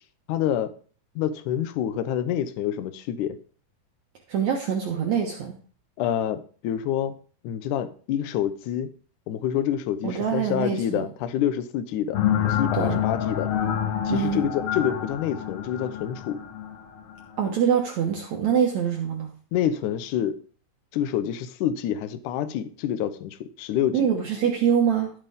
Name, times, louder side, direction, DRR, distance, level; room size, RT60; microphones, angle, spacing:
voice 1, 0.3-0.7 1.2-3.4 6.0-7.1 7.4-8.9 9.3-13.5 14.1-16.4 19.5-20.4 20.9-24.1, left 10 dB, 70° left, 2.1 m, -27 dB
voice 2, 4.3-5.6 10.0-11.1 12.8-13.0 14.1-14.4 17.4-19.3 23.9-25.1, right 8 dB, 60° right, 2.2 m, -24 dB
sound 1, 12.1-17.5, left 9 dB, 90° left, 3.3 m, -27 dB
12.5 x 8.1 x 3.6 m
omnidirectional pair, 4.1 m